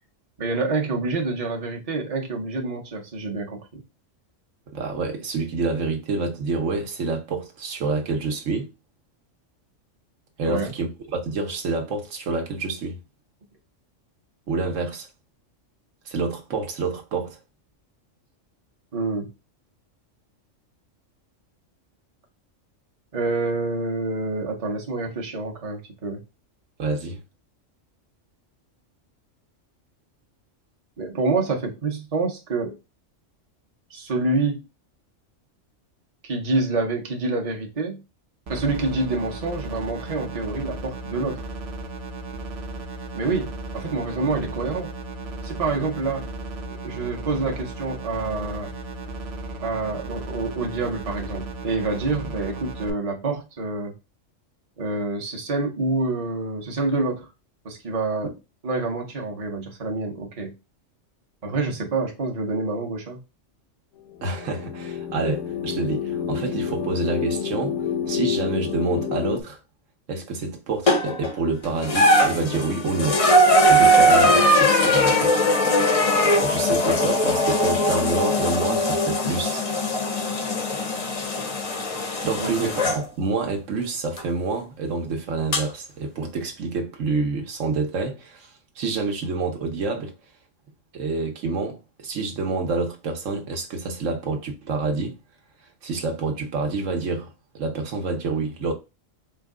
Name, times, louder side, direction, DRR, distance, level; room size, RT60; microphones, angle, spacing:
voice 1, 0.4-3.8 10.5-10.7 18.9-19.3 23.1-26.2 31.0-32.8 33.9-34.6 36.2-38.0 38.5-41.4 43.1-44.9 45.4-46.3 46.7-48.7 49.6-53.9 54.8-57.3 57.6-58.3 58.6-60.5 61.4-63.2 82.4-82.7, right 3 dB, 30° right, 0.8 m, -27 dB
voice 2, 4.7-8.7 10.4-13.0 14.5-15.1 16.1-17.4 26.8-27.2 58.2-58.3 64.2-67.8 68.1-69.6 70.1-73.2 73.7-75.5 76.1-79.6 82.2-90.1 90.9-95.1 95.8-98.7, right 3 dB, 75° right, 1.2 m, -28 dB
sound 1, 38.5-52.9, right 2 dB, 60° right, 0.9 m, -35 dB
sound 2, 64.1-69.4, left 8 dB, 85° left, 1.0 m, -28 dB
sound 3, 70.9-71.3 71.8-83.0 84.2-84.3 85.5-85.6, equal, 45° left, 0.5 m, -20 dB
4.5 x 2.2 x 3.5 m
omnidirectional pair, 1.3 m